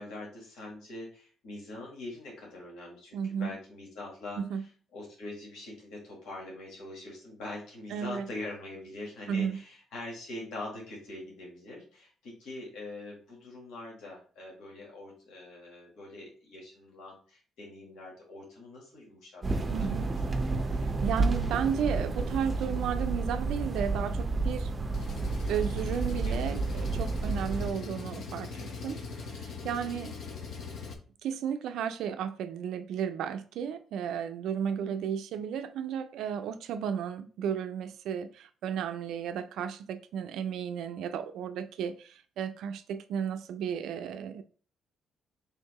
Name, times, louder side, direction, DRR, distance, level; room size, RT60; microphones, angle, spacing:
voice 1, 0.0-20.4 26.2-26.9 28.5-28.8 29.8-30.4, left 2 dB, 85° left, 1.5 m, -44 dB
voice 2, 3.1-3.5 4.4-4.6 7.9-8.3 9.3-9.6 19.7-20.1 20.7-24.7 25.5-29.0 29.3-30.1 31.2-44.4, right 8 dB, 80° right, 0.3 m, -34 dB
sound 1, 19.4-27.7, right 3 dB, 25° right, 0.6 m, -30 dB
Engine, 24.9-30.9, left 4 dB, 65° left, 0.7 m, -41 dB
3.6 x 2.6 x 4.6 m
cardioid pair, 90°, 0 cm